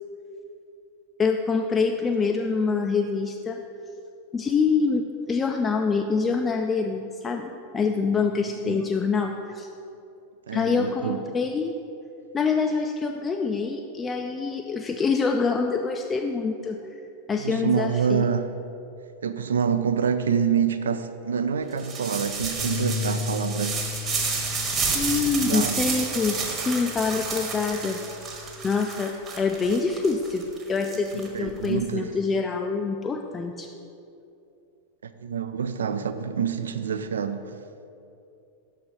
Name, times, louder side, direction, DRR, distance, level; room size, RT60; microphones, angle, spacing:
voice 1, 1.2-3.6 4.3-9.7 10.5-11.8 12.3-16.8 17.3-18.2 24.9-28.0 28.6-33.7, left 4 dB, 20° left, 3 dB, 0.3 m, -25 dB
voice 2, 10.5-11.3 17.4-18.5 19.2-23.8 25.3-25.9 31.1-32.1 35.2-37.5, right 7 dB, 65° right, 10 dB, 0.3 m, -26 dB
sound 1, 21.8-31.7, right 4 dB, 25° right, 1.0 m, -30 dB
sound 2, 22.6-28.8, left 6 dB, 55° left, 0.8 m, -36 dB
6.1 x 4.1 x 5.2 m, 2.7 s
figure-of-eight pair, 90°, 0 cm